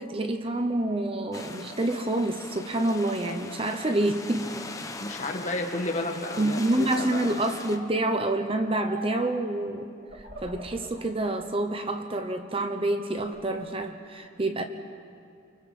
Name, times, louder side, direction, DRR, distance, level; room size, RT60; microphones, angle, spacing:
voice 1, 0.0-4.5 6.4-9.9 10.4-14.6, right 1 dB, 30° right, 6 dB, 0.9 m, -27 dB
sound 1, 0.9-4.2 4.5-5.4 5.8-6.5 7.4-8.0 8.7-9.3 10.0-11.1 11.6-12.5 13.0-13.7, right 2 dB, 50° right, 3.0 m, -47 dB
sound 2, 1.3-7.8, left 3 dB, 15° left, 0.9 m, -41 dB
voice 2, 5.0-7.3, left 2 dB, 35° left, 2 dB, 1.9 m, -32 dB
30.0 x 24.5 x 4.3 m, 2.3 s
head